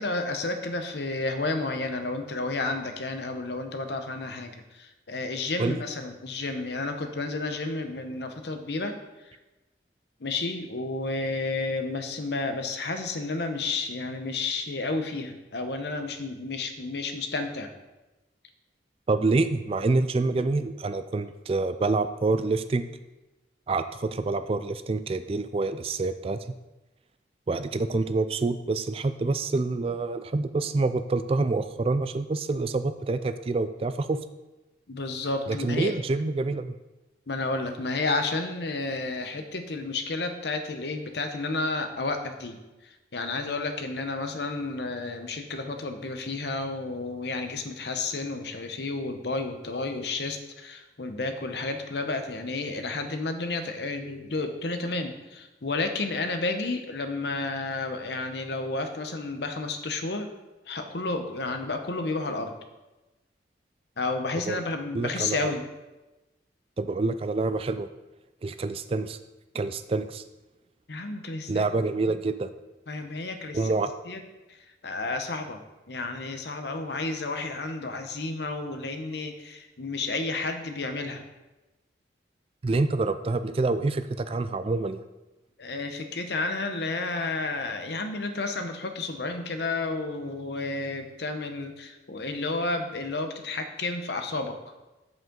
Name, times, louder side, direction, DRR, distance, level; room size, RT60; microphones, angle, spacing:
voice 1, 0.0-8.9 9.2-9.4 10.2-17.7 34.9-35.9 37.3-60.3 60.7-62.5 64.0-65.7 70.9-71.7 72.9-73.7 74.1-74.2 74.5-81.2 85.6-94.6, left 3 dB, 65° left, 6 dB, 0.8 m, -31 dB
voice 2, 19.1-22.9 23.7-26.4 27.5-34.2 35.5-36.7 64.5-64.6 64.9-65.5 66.8-67.9 68.4-69.2 69.5-70.2 71.5-72.5 73.5-73.9 82.6-85.0, right 3 dB, 30° right, 11 dB, 0.3 m, -27 dB
7.8 x 7.4 x 3.8 m, 1.1 s
head